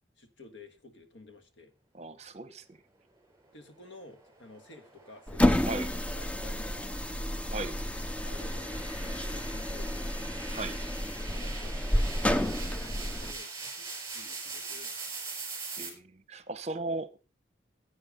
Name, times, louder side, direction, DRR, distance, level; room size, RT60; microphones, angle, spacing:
voice 1, 0.2-1.7 3.5-5.6 5.9-7.2 8.2-10.1 11.2-12.1 12.6-13.9 14.1-15.2, left 2 dB, 85° left, 1.7 m, -52 dB
voice 2, 1.9-2.8 5.6-5.9 7.5-7.8 10.5-10.8 15.7-17.2, right 2 dB, 35° right, 0.9 m, -37 dB
sound 1, 3.8-15.9, right 4 dB, 15° right, 3.6 m, -43 dB
sound 2, 5.3-13.4, left 1 dB, 5° left, 0.5 m, -30 dB
10.5 x 8.8 x 5.1 m
head